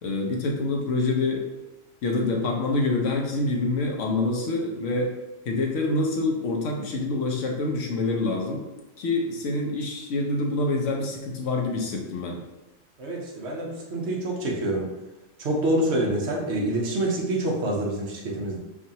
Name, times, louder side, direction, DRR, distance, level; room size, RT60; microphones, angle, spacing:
voice 1, 0.0-1.4 2.0-5.1 5.4-8.7 9.0-12.4, left 2 dB, 70° left, 1 dB, 1.0 m, -26 dB
voice 2, 13.0-14.9 15.4-18.6, right 1 dB, 60° right, -2 dB, 1.0 m, -26 dB
4.6 x 2.4 x 2.8 m, 1.0 s
omnidirectional pair, 1.4 m